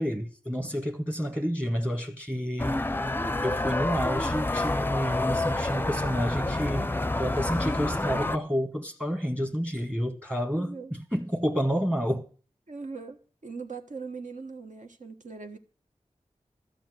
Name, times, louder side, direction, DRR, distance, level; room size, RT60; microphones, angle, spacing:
voice 1, 0.0-2.8 3.4-6.9 7.2-12.3, equal, 15° right, 1.2 m, -29 dB
sound 1, 2.6-8.4, left 2 dB, 15° left, 0.5 m, -28 dB
voice 2, 10.5-10.9 12.7-15.6, right 4 dB, 75° right, 1.4 m, -40 dB
13.5 x 5.8 x 9.0 m
wide cardioid pair, 65°, 13 cm